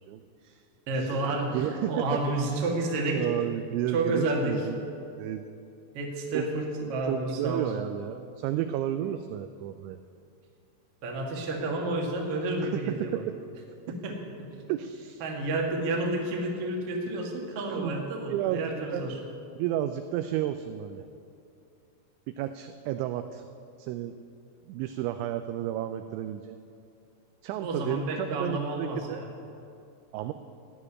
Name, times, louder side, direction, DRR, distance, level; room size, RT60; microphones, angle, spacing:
voice 1, 0.1-0.6 1.0-1.2 1.5-1.9 2.4-2.7 3.1-4.9 5.2-5.6 6.3-6.5 6.8-10.0 12.7-13.4 14.7-15.2 17.7-18.0 18.3-19.2 19.5-21.1 22.3-23.4 23.8-24.1 24.7-26.6 27.4-29.2 30.1-30.3, right 12 dB, 85° right, 9 dB, 2.7 m, -32 dB
voice 2, 0.9-3.2 3.9-4.7 5.9-7.7 11.0-13.2 13.9-14.1 15.2-19.2 27.6-29.3, right 2 dB, 60° right, -1 dB, 1.5 m, -30 dB
16.0 x 6.5 x 9.8 m, 2.5 s
omnidirectional pair, 5.8 m